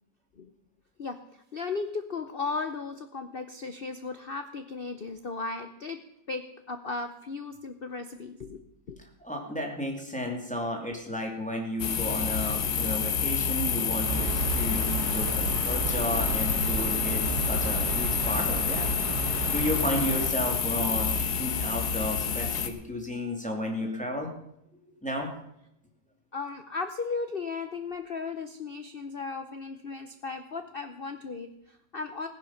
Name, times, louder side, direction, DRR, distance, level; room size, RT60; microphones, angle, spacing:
voice 1, 1.5-6.0 6.3-9.0 26.3-32.3, left 4 dB, 85° left, 8 dB, 0.5 m, -36 dB
voice 2, 9.2-18.9 19.5-24.3 25.0-25.3, equal, 5° left, 0 dB, 2.4 m, -33 dB
sound 1, 11.8-22.7, left 6 dB, 55° left, 1.5 m, -28 dB
sound 2, 14.0-20.3, right 3 dB, 55° right, 1.5 m, -33 dB
16.0 x 10.5 x 5.7 m, 0.80 s
omnidirectional pair, 2.2 m